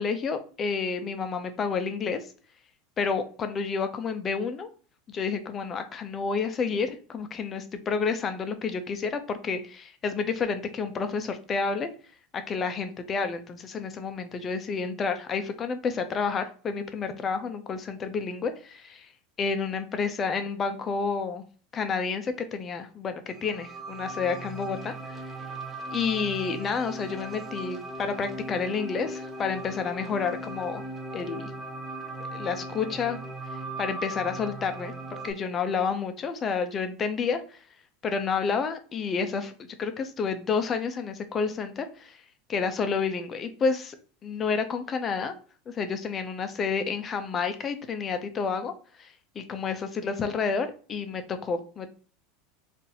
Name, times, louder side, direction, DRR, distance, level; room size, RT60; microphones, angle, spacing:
voice 1, 0.0-2.2 3.0-4.7 5.1-11.9 12.3-19.1 19.4-21.4 21.7-25.2 25.9-30.8 31.1-31.5 32.3-33.2 33.8-34.9 35.2-37.6 38.0-42.2 42.5-44.0 44.2-45.3 45.7-48.7 49.0-51.9, left 5 dB, 25° left, 8 dB, 0.5 m, -30 dB
sound 1, 23.3-35.3, right 1 dB, 10° right, 0.7 m, -38 dB
3.9 x 2.5 x 2.7 m, 0.41 s
supercardioid pair, 135°, 0 cm